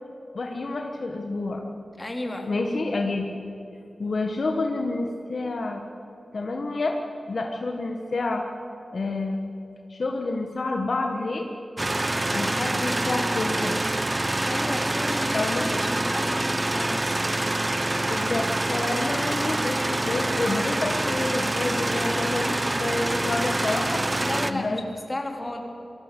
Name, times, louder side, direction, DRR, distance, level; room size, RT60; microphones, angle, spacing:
voice 1, 0.3-1.7 2.5-3.3 4.0-5.8 6.3-7.0 7.3-8.4 8.9-9.4 9.9-11.4 12.3-13.8 15.3-15.6 16.2-16.4 18.1-24.2 24.5-24.8 25.4-25.5, left 2 dB, 70° left, 3 dB, 1.7 m, -28 dB
voice 2, 2.0-2.5 14.5-17.2 24.2-25.6, left 1 dB, 30° left, 2 dB, 3.5 m, -33 dB
sound 1, 11.8-24.5, right 2 dB, 30° right, 1.0 m, -26 dB
22.0 x 17.0 x 8.4 m, 2.8 s
cardioid pair, 55°, 0 cm